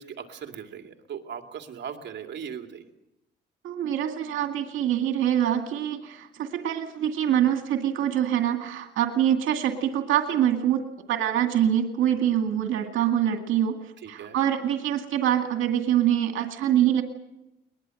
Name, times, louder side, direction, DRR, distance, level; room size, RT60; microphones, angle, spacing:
voice 1, 0.0-2.8 14.0-14.4, right 7 dB, 60° right, 4 dB, 2.5 m, -39 dB
voice 2, 3.6-10.8 11.1-13.8 14.1-17.0, right 10 dB, 85° right, 4 dB, 2.2 m, -24 dB
21.5 x 21.0 x 7.8 m, 0.92 s
cardioid pair, 90°, 20 cm